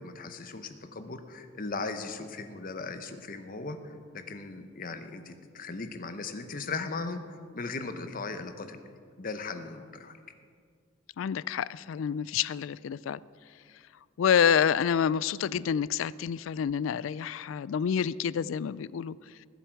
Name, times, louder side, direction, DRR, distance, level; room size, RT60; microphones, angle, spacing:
voice 1, 0.0-7.2 7.5-8.8 9.2-10.1, left 3 dB, 45° left, 8 dB, 0.9 m, -38 dB
voice 2, 11.2-13.2 14.2-19.2, left 8 dB, 75° left, 20 dB, 0.3 m, -28 dB
20.5 x 8.1 x 4.6 m, 2.1 s
head